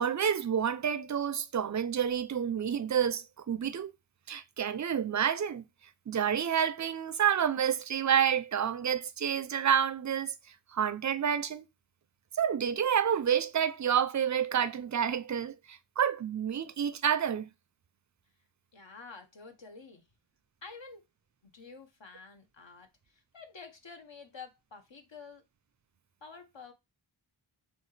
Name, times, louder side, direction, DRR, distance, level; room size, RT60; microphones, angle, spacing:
voice 1, 0.0-3.9 4.3-5.6 6.1-10.3 10.7-11.7 12.4-17.5, right 8 dB, 35° right, 0.4 m, -29 dB
voice 2, 18.7-20.0 20.6-21.0 21.4-25.4 26.2-26.7, left 4 dB, 60° left, 1.0 m, -49 dB
6.1 x 2.4 x 3.2 m
wide cardioid pair, 50°, 50 cm